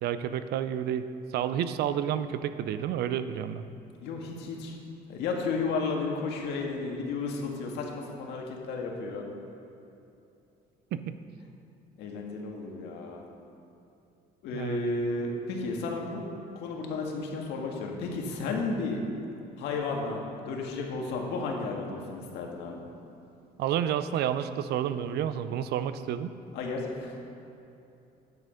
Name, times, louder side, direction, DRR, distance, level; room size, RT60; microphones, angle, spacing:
voice 1, 0.0-3.6 10.9-11.2 14.5-14.8 23.6-26.3, right 9 dB, 75° right, 12 dB, 0.6 m, -30 dB
voice 2, 4.0-4.8 5.1-9.2 12.0-13.2 14.4-16.3 16.6-19.0 19.6-22.8 26.5-27.2, left 3 dB, 85° left, 0 dB, 1.8 m, -33 dB
10.5 x 9.0 x 5.1 m, 2.8 s
cardioid pair, 110°, 17 cm